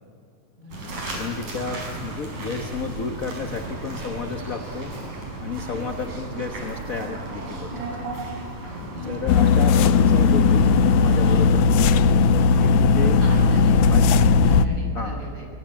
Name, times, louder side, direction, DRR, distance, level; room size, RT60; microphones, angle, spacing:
sound 1, 0.7-11.5, right 2 dB, 85° right, 7.1 m, -34 dB
voice 1, 1.1-4.9 5.4-7.9 9.0-13.2 13.9-14.0 14.9-15.3, left 4 dB, 60° left, 4 dB, 0.9 m, -32 dB
voice 2, 8.7-9.0 13.2-13.7 14.0-15.4, left 1 dB, 25° right, -1 dB, 7.8 m, -37 dB
sound 2, 9.3-14.7, left 5 dB, 80° left, 2.1 m, -17 dB
24.0 x 23.5 x 8.9 m, 2.3 s
omnidirectional pair, 3.5 m